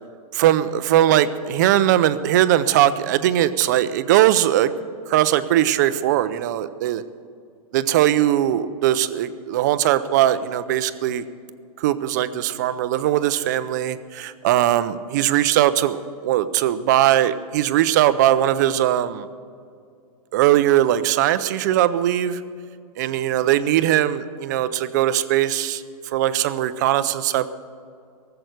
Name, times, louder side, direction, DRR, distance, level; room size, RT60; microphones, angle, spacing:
voice 1, 0.3-4.7 5.1-7.0 7.7-11.2 11.8-19.3 20.3-22.4 23.0-25.8 26.1-27.5, right 12 dB, 30° right, 13 dB, 0.5 m, -20 dB
18.5 x 7.8 x 8.1 m, 2.3 s
hypercardioid pair, 170°, 19 cm